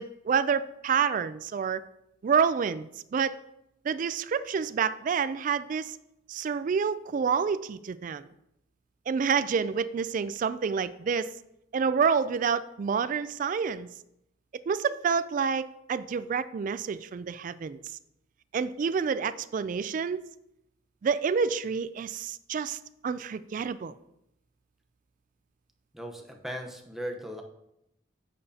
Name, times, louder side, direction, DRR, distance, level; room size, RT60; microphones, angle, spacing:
voice 1, 0.0-1.8 2.2-3.4 3.8-6.0 6.3-8.3 9.1-11.3 11.7-13.9 14.7-17.8 18.5-20.2 21.0-23.9, right 6 dB, 45° right, 14 dB, 0.3 m, -28 dB
voice 2, 25.9-27.4, equal, ahead, 2 dB, 0.8 m, -37 dB
10.5 x 6.8 x 2.8 m, 0.82 s
head